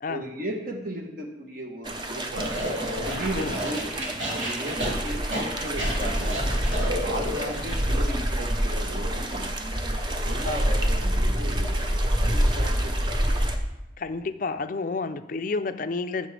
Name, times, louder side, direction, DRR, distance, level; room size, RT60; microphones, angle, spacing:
voice 1, 0.1-2.5 3.1-3.9 4.3-6.5 7.0-9.5 10.2-13.4, right 1 dB, 50° right, 2 dB, 1.1 m, -36 dB
sound 1, 1.8-13.6, equal, 25° right, 0.7 m, -27 dB
sound 2, 2.4-7.8, equal, 85° right, 2.1 m, -32 dB
voice 2, 14.0-16.3, left 3 dB, 45° left, 11 dB, 0.4 m, -30 dB
14.0 x 6.8 x 3.3 m, 0.93 s
head